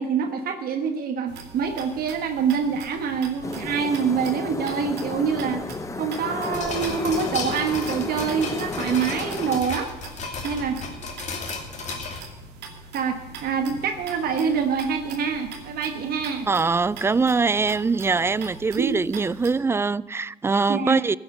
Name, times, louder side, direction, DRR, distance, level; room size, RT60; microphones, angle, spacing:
voice 1, 0.0-9.9 10.4-10.8 12.9-16.5 18.8-19.2 20.7-21.0, right 6 dB, 60° right, 1.3 m, -26 dB
sound 1, 1.3-19.5, right 4 dB, 80° right, 2.5 m, -43 dB
sound 2, 3.4-9.6, left 3 dB, 20° left, 0.8 m, -33 dB
sound 3, 6.5-12.2, left 4 dB, 45° left, 2.8 m, -34 dB
voice 2, 16.5-21.2, right 4 dB, 15° right, 0.3 m, -23 dB
15.5 x 8.8 x 6.5 m
cardioid pair, 110°, 17 cm